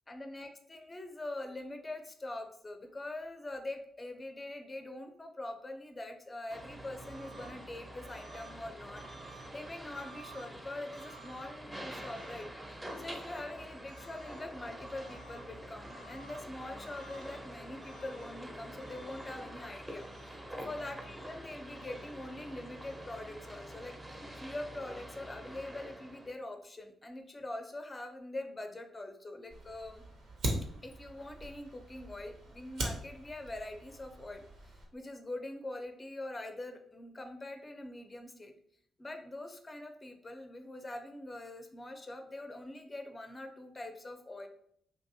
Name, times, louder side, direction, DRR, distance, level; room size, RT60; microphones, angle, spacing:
voice 1, 0.1-9.0 9.3-12.5 13.0-20.1 20.5-24.0 24.4-30.0 30.8-38.5 39.0-44.5, left 2 dB, 30° left, 5 dB, 0.5 m, -43 dB
sound 1, 6.5-26.3, right 1 dB, 20° right, 0.6 m, -46 dB
Fire, 29.5-34.9, right 1 dB, 70° right, 0.7 m, -41 dB
2.9 x 2.6 x 2.6 m, 0.66 s
hypercardioid pair, 45°, 0 cm